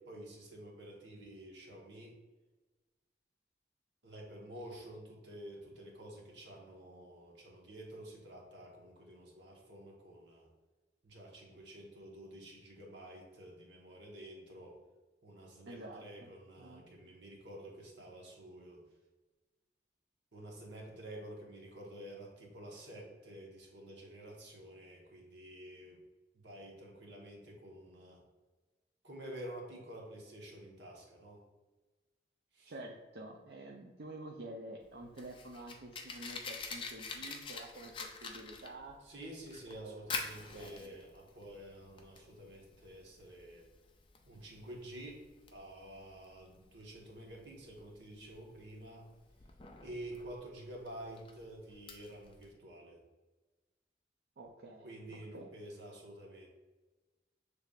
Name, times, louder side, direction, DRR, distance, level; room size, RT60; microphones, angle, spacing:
voice 1, 0.0-2.2 4.0-10.5 11.0-14.8 15.2-18.8 20.3-26.0 26.3-28.2 29.0-31.4 32.5-32.7 39.0-43.7 44.2-45.2 45.5-49.1 49.8-53.0 54.8-56.5, right 1 dB, 90° right, -1 dB, 1.2 m, -50 dB
voice 2, 15.7-17.1 32.7-39.0 39.7-40.9 54.4-55.5, right 1 dB, 65° right, -1 dB, 0.5 m, -49 dB
Fire, 34.8-52.5, left 4 dB, 30° left, 0.4 m, -47 dB
6.6 x 3.3 x 2.4 m, 1.2 s
head